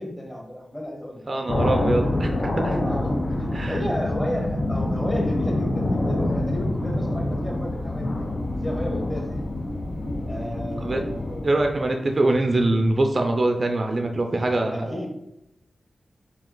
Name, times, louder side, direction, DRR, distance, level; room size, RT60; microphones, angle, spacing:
voice 1, 0.0-1.4 1.9-2.3 2.8-8.3 8.6-9.4 10.2-11.5 14.5-15.1, left 1 dB, 15° left, -1 dB, 1.2 m, -33 dB
voice 2, 1.3-2.3 2.6-2.8 3.5-4.0 10.3-11.0 11.4-15.1, right 2 dB, 50° right, 4 dB, 0.4 m, -24 dB
sound 1, 1.5-11.9, left 1 dB, 55° left, 0.5 m, -26 dB
3.0 x 2.8 x 3.8 m, 0.83 s
cardioid pair, 45°, 0 cm